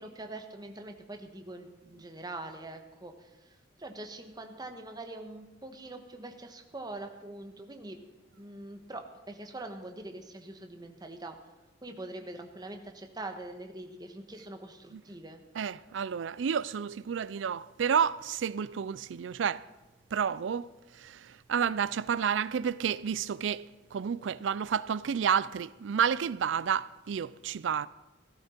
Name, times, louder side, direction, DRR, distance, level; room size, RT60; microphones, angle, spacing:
voice 1, 0.0-8.0 8.4-11.4 11.8-15.4, right 2 dB, 20° right, 1.3 m, -43 dB
voice 2, 15.6-19.6 20.1-20.7 20.9-27.9, right 7 dB, 70° right, 0.4 m, -30 dB
16.0 x 13.5 x 4.4 m
head